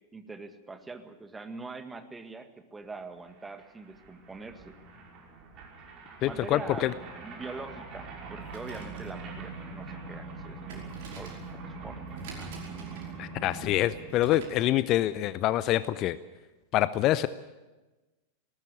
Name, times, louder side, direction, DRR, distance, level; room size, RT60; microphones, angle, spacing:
voice 1, 0.1-4.7 6.2-6.9 7.2-12.0 12.4-12.5, right 3 dB, 10° right, 8 dB, 1.9 m, -43 dB
sound 1, 3.0-3.1 3.2-14.1, right 3 dB, 35° right, 5.4 m, -43 dB
voice 2, 6.2-6.9 13.2-16.2 16.7-17.3, left 14 dB, 35° left, 16 dB, 0.6 m, -26 dB
sound 2, 8.3-14.7, right 4 dB, 50° right, 5.4 m, -48 dB
19.5 x 19.0 x 8.4 m, 1.1 s
figure-of-eight pair, 90°, 0 cm